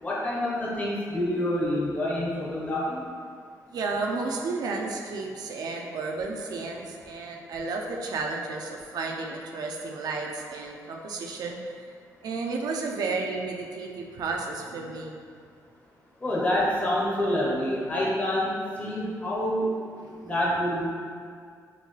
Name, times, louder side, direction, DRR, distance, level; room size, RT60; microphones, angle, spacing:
voice 1, 0.0-3.0 16.2-19.7 20.3-20.8, left 1 dB, 20° left, -6 dB, 0.7 m, -27 dB
voice 2, 3.7-11.8 12.2-15.2 20.0-20.4, right 3 dB, 70° right, 1 dB, 0.4 m, -32 dB
3.8 x 2.2 x 3.1 m, 2.2 s
cardioid pair, 95°, 7 cm